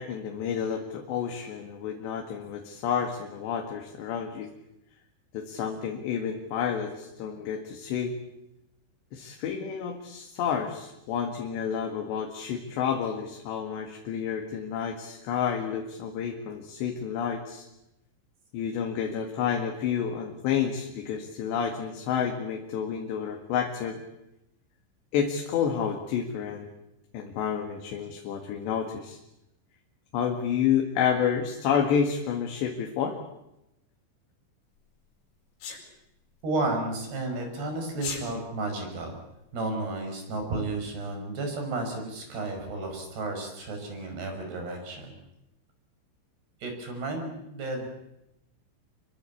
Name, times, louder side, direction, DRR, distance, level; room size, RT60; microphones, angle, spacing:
voice 1, 0.0-4.5 5.3-8.2 9.1-17.7 18.5-24.0 25.1-26.7 27.1-29.2 30.1-33.2, left 7 dB, 65° left, 3 dB, 3.9 m, -30 dB
Sneeze, 35.6-35.8 37.9-38.2, left 5 dB, 85° left, 7.4 m, -34 dB
voice 2, 36.4-39.2 39.5-45.2 46.6-47.9, right 2 dB, 55° right, 4 dB, 7.5 m, -32 dB
26.5 x 22.5 x 8.5 m, 0.88 s
omnidirectional pair, 5.6 m